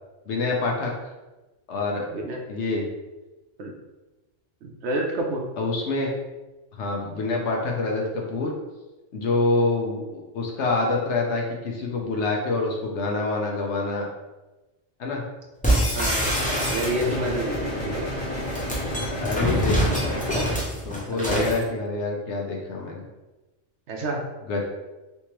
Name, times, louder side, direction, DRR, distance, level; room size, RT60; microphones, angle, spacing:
voice 1, 0.3-0.9 1.7-2.1 2.5-2.9 5.6-6.1 6.7-8.5 9.1-14.1 15.0-15.2 17.0-17.2 19.2-20.2 20.8-23.1 24.5-24.6, left 3 dB, 65° left, 0 dB, 0.9 m, -26 dB
voice 2, 4.6-5.4 15.9-16.4 16.7-18.1 21.2-21.5 23.9-24.2, right 1 dB, 65° right, 1 dB, 0.8 m, -28 dB
sound 1, 15.6-17.3 18.3-21.6, equal, 10° left, 0.5 m, -25 dB
sound 2, 16.2-20.6, equal, 40° left, 1.1 m, -30 dB
3.4 x 3.0 x 3.0 m, 1.1 s
omnidirectional pair, 1.3 m